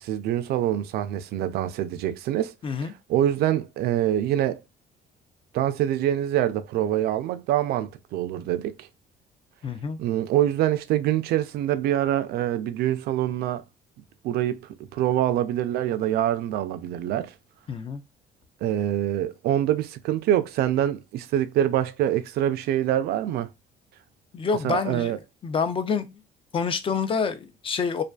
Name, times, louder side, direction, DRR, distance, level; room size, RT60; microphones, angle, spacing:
voice 1, 0.0-2.5 2.8-4.6 5.5-8.8 10.0-13.6 14.2-17.3 18.6-23.5 24.6-25.2, right 12 dB, 70° right, 0.4 m, -25 dB
voice 2, 2.6-2.9 9.6-10.0 17.7-18.0 24.3-25.2 25.4-26.1 26.5-28.0, left 5 dB, 30° left, 0.4 m, -27 dB
2.4 x 2.4 x 2.2 m
cardioid pair, 110°, 17 cm